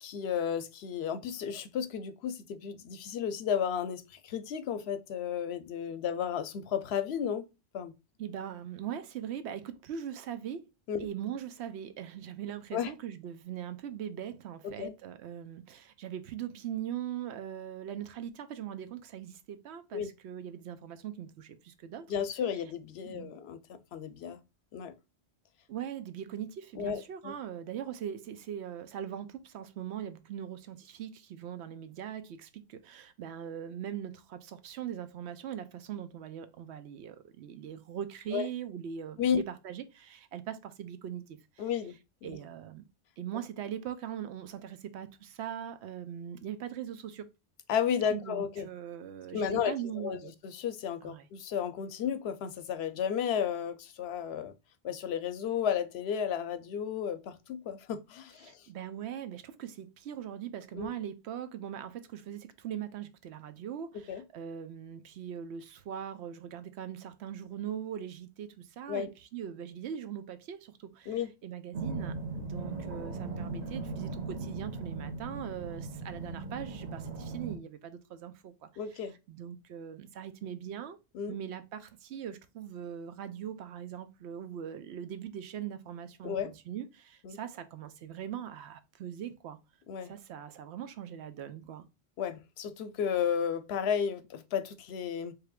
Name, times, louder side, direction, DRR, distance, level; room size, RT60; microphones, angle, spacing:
voice 1, 0.0-7.5 7.7-7.9 10.9-11.1 12.7-12.9 14.8-14.9 19.9-20.1 22.1-23.6 23.9-24.4 24.7-24.9 26.7-27.3 38.3-38.5 39.2-39.4 41.6-41.9 42.2-42.4 47.7-48.7 49.3-54.5 54.8-58.6 60.7-60.9 64.1-64.2 68.9-69.1 71.1-71.3 78.8-79.1 81.1-81.3 86.2-86.5 87.2-87.4 89.9-90.1 92.2-95.3, left 8 dB, 75° left, 0.8 m, -33 dB
voice 2, 8.2-10.7 11.0-22.1 23.0-23.4 25.7-41.6 42.2-42.8 43.2-47.3 48.1-50.3 51.0-51.3 58.4-81.0 81.3-89.6 90.0-91.9, right 9 dB, 85° right, 0.9 m, -41 dB
sound 1, 71.7-77.6, right 3 dB, 40° right, 0.9 m, -38 dB
4.8 x 3.1 x 2.3 m
omnidirectional pair, 1.1 m